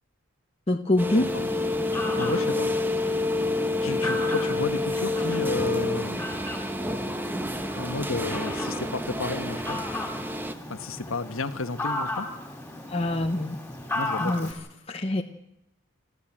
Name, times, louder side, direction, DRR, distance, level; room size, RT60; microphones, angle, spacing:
voice 1, 0.7-1.3 12.9-13.6 14.2-14.5 14.9-15.2, left 1 dB, 30° left, 3 dB, 0.9 m, -24 dB
sound 1, 1.0-10.5, left 2 dB, 10° right, 1.2 m, -28 dB
Fowl, 1.3-14.5, left 2 dB, 10° left, 4.1 m, -36 dB
voice 2, 2.2-2.7 3.8-6.2 7.7-9.8 10.7-12.3 13.9-14.5, left 3 dB, 80° left, 10 dB, 1.3 m, -32 dB
28.0 x 13.0 x 8.8 m, 0.85 s
head